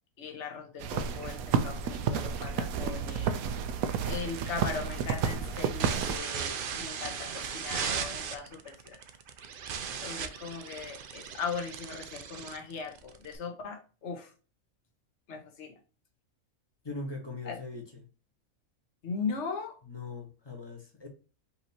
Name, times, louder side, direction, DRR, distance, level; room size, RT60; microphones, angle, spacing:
voice 1, 0.2-3.3 4.0-9.0 10.0-14.3 15.3-15.7 17.4-17.6 19.0-19.8, left 5 dB, 55° left, 1.4 m, -39 dB
sound 1, 0.8-6.2, right 6 dB, 85° right, 1.1 m, -31 dB
sound 2, 3.8-13.4, right 7 dB, 55° right, 0.6 m, -38 dB
voice 2, 16.8-17.8 19.9-21.1, left 3 dB, 20° left, 1.1 m, -40 dB
5.5 x 2.9 x 2.8 m
omnidirectional pair, 1.5 m